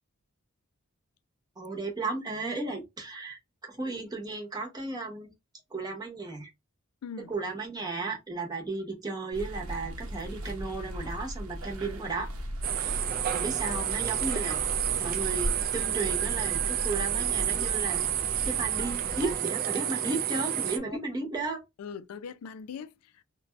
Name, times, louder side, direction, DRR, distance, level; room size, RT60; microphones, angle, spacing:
voice 1, 1.6-3.4 3.7-5.3 5.7-6.5 7.3-12.3 12.8-13.0 13.3-14.6 15.0-18.0 18.4-21.6, right 3 dB, 20° right, 0.8 m, -34 dB
voice 2, 7.0-7.3 20.8-21.0 21.8-23.2, left 6 dB, 90° left, 0.3 m, -41 dB
sound 1, 9.3-19.4, equal, 90° right, 0.7 m, -37 dB
sound 2, 12.6-20.8, right 10 dB, 45° right, 0.3 m, -30 dB
2.6 x 2.2 x 3.1 m
head